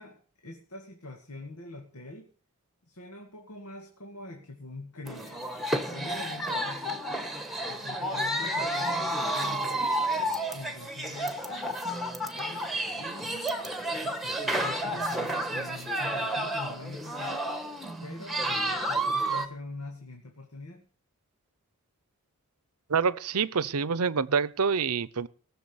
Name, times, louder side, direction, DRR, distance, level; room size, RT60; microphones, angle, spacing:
voice 1, 0.0-2.3 2.9-5.5 5.9-7.1 7.6-10.0 10.5-11.6 12.3-13.7 14.0-17.4 18.0-20.8, left 2 dB, 85° left, 2.2 m, -44 dB
sound 1, 5.1-19.5, right 1 dB, ahead, 1.4 m, -31 dB
voice 2, 22.9-25.3, right 5 dB, 85° right, 0.7 m, -26 dB
19.0 x 7.2 x 7.2 m
head